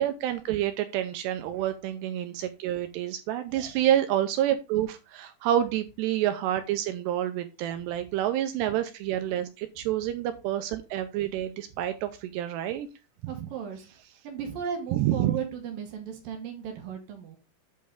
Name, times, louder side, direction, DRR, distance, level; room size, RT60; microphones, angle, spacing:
voice 1, 0.0-12.9 13.2-13.5 14.9-15.4, right 12 dB, 85° right, 8 dB, 2.4 m, -28 dB
voice 2, 13.3-13.9 14.2-17.4, right 7 dB, 65° right, 3 dB, 2.4 m, -36 dB
8.8 x 5.4 x 3.6 m, 0.28 s
omnidirectional pair, 5.5 m